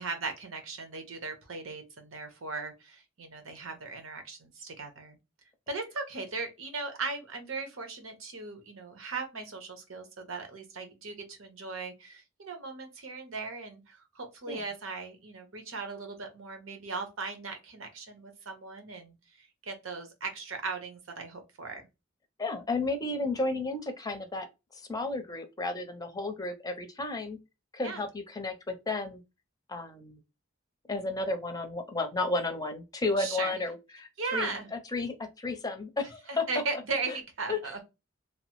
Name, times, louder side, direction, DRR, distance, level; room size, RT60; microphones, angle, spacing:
voice 1, 0.0-5.2 5.7-21.8 27.8-28.1 33.2-33.6 34.2-34.7 36.3-37.8, right 4 dB, 90° right, 0.9 m, -38 dB
voice 2, 22.4-24.5 24.7-27.4 27.7-29.2 29.7-30.2 30.9-36.4 37.5-37.8, left 3 dB, 20° left, 0.6 m, -33 dB
3.0 x 2.0 x 3.0 m
head